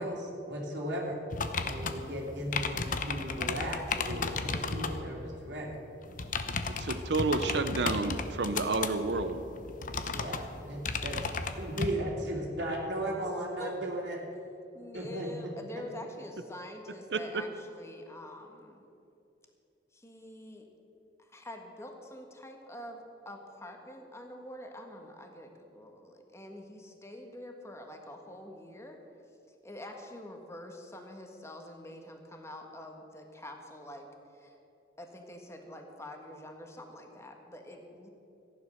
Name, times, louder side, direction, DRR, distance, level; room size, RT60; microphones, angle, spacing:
voice 1, 0.0-1.2 1.6-5.7 10.1-11.2 11.6-14.2 14.9-15.5, right 1 dB, 85° right, -3 dB, 2.7 m, -36 dB
sound 1, 1.3-5.0 6.1-11.9, left 4 dB, 50° left, 0.8 m, -34 dB
voice 2, 1.6-2.1 13.6-13.7 14.7-18.8 19.9-20.7 21.2-29.0 29.6-34.6 35.0-38.1, left 1 dB, 15° left, 3 dB, 1.5 m, -46 dB
voice 3, 6.8-9.4 17.1-17.4, right 3 dB, 70° right, 10 dB, 0.7 m, -30 dB
15.0 x 11.0 x 6.5 m, 2.9 s
head